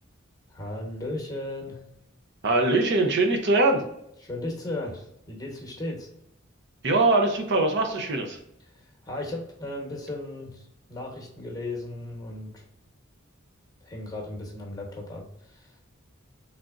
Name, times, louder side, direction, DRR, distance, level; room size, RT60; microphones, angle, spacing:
voice 1, 0.5-1.8 4.2-6.1 9.0-10.6 10.9-12.6 13.8-15.8, left 1 dB, 20° left, 0 dB, 1.1 m, -36 dB
voice 2, 2.4-3.8 6.8-8.4, right 2 dB, 60° right, 4 dB, 0.7 m, -22 dB
3.8 x 3.5 x 2.5 m, 0.75 s
head